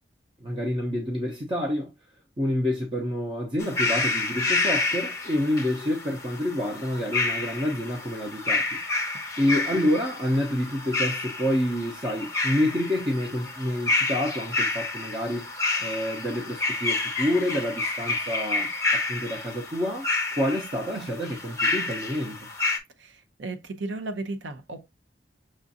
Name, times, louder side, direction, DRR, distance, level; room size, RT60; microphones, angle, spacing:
voice 1, 0.4-1.9 2.4-8.8 9.4-15.5 15.8-20.1 20.4-22.4, left 1 dB, 30° right, 0.7 m, -28 dB
sound 1, 3.6-22.8, left 3 dB, 20° left, 0.8 m, -29 dB
voice 2, 23.0-24.9, right 2 dB, 90° right, 0.7 m, -35 dB
6.1 x 2.4 x 2.7 m
head